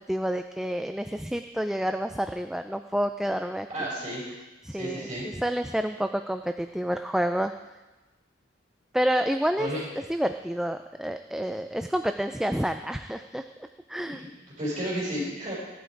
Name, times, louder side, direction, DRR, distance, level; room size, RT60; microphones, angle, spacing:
voice 1, 0.1-3.7 4.6-5.1 5.3-7.5 8.9-9.7 10.1-14.2, equal, 5° right, 7 dB, 0.4 m, -29 dB
voice 2, 3.7-4.3 4.7-5.4 9.6-9.9 14.0-14.3 14.6-15.5, equal, 35° right, -7 dB, 5.7 m, -32 dB
17.0 x 11.0 x 4.7 m, 1.1 s
head